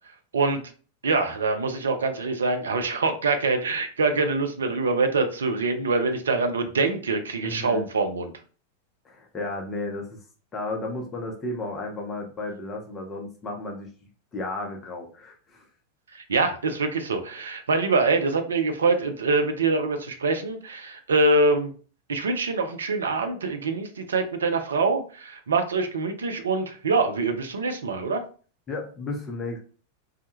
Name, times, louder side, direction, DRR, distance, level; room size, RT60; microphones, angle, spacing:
voice 1, 1.0-8.3 16.1-21.7 22.1-28.2, right 3 dB, 70° right, 7 dB, 0.3 m, -24 dB
voice 2, 7.4-7.8 9.0-10.2 10.5-13.9 14.3-15.6 28.7-29.6, left 2 dB, 20° left, 1 dB, 0.5 m, -33 dB
2.1 x 2.0 x 2.9 m, 0.39 s
figure-of-eight pair, 90°, 0 cm